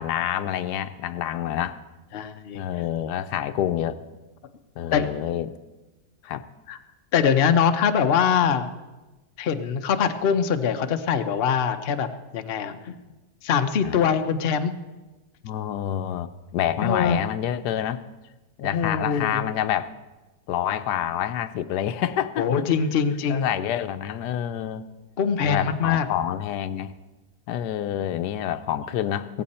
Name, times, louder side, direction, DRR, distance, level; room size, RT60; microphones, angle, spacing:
voice 1, 0.0-1.8 2.5-4.0 4.8-5.5 6.2-6.4 13.8-14.0 15.4-18.0 18.6-19.9 20.5-22.7 23.3-24.9 25.4-26.9 27.5-29.4, left 11 dB, 85° left, 12 dB, 1.2 m, -27 dB
voice 2, 2.1-2.6 4.9-5.1 6.7-6.8 7.1-8.7 9.4-12.1 12.3-13.0 13.4-14.7 16.8-17.2 18.6-19.5 22.4-23.5 25.2-26.1, left 7 dB, 45° left, 7 dB, 0.8 m, -23 dB
16.5 x 15.5 x 4.3 m, 1.1 s
omnidirectional pair, 1.7 m